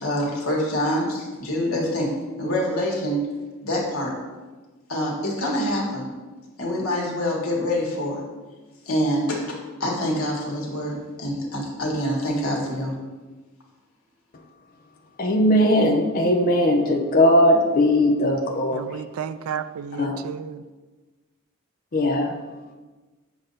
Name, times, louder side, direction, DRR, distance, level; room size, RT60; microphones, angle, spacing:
voice 1, 0.0-2.1 2.4-3.2 3.6-4.1 4.9-6.1 6.6-8.2 8.8-13.0, equal, 80° left, 1.5 m, -26 dB
voice 2, 15.2-19.0 20.0-20.2 21.9-22.3, left 1 dB, 40° left, 0.5 m, -19 dB
voice 3, 18.7-20.6, right 7 dB, 85° right, 0.3 m, -32 dB
7.1 x 2.6 x 5.4 m
head